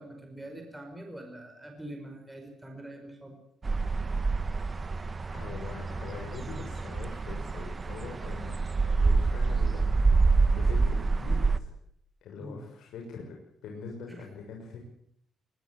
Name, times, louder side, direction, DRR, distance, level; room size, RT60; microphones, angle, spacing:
voice 1, 0.0-3.4 12.4-12.6 14.1-14.3, right 1 dB, 5° right, 3 dB, 5.2 m, -44 dB
sound 1, 3.6-11.6, right 4 dB, 25° right, 1.2 m, -27 dB
voice 2, 5.3-8.6 8.9-10.0 10.5-11.7 12.2-13.4 13.6-14.9, left 4 dB, 80° left, 1 dB, 6.3 m, -43 dB
22.5 x 22.0 x 8.2 m, 0.68 s
cardioid pair, 150°, 0 cm